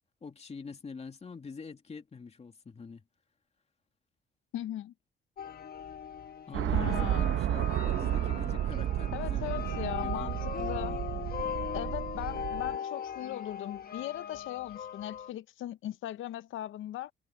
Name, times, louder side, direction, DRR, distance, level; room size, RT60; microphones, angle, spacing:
voice 1, 0.2-3.0 6.5-10.4 10.9-11.0, left 5 dB, 30° left, 2.5 m, -45 dB
voice 2, 4.5-4.9 6.7-7.3 9.1-11.0 11.7-17.1, left 13 dB, 80° left, 0.9 m, -38 dB
sound 1, 5.4-15.3, left 8 dB, 50° left, 1.2 m, -39 dB
sound 2, 6.5-12.8, right 12 dB, 75° right, 1.1 m, -32 dB
cardioid pair, 90°, 20 cm